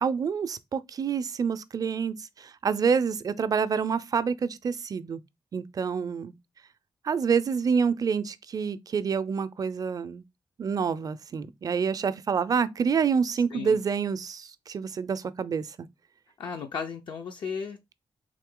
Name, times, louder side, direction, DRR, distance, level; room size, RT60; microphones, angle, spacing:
voice 1, 0.0-5.2 5.5-6.3 7.0-10.2 10.6-15.7, right 6 dB, 45° right, 0.4 m, -27 dB
voice 2, 16.4-18.0, left 6 dB, 70° left, 0.5 m, -35 dB
3.7 x 2.8 x 3.7 m
cardioid pair, 80°, 9 cm